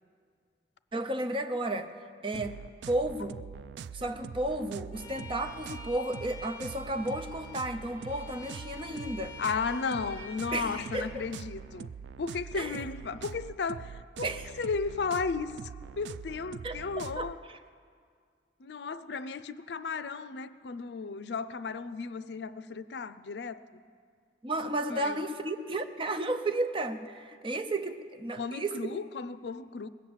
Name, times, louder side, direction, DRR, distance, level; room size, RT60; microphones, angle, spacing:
voice 1, 0.9-1.9 2.2-2.6 2.9-3.4 3.9-9.3 10.5-11.2 12.6-12.8 14.2-14.4 16.6-16.8 17.2-17.3 24.4-29.0, right 1 dB, 30° right, 0.6 m, -33 dB
sound 1, 2.3-17.3, right 6 dB, 75° right, 0.3 m, -44 dB
Bowed string instrument, 4.9-11.2, left 3 dB, 35° left, 2.7 m, -48 dB
voice 2, 9.4-11.9 12.2-15.7 16.0-17.4 18.6-23.6 24.9-25.2 28.4-29.9, left 5 dB, 75° left, 0.5 m, -34 dB
20.5 x 8.5 x 7.3 m
head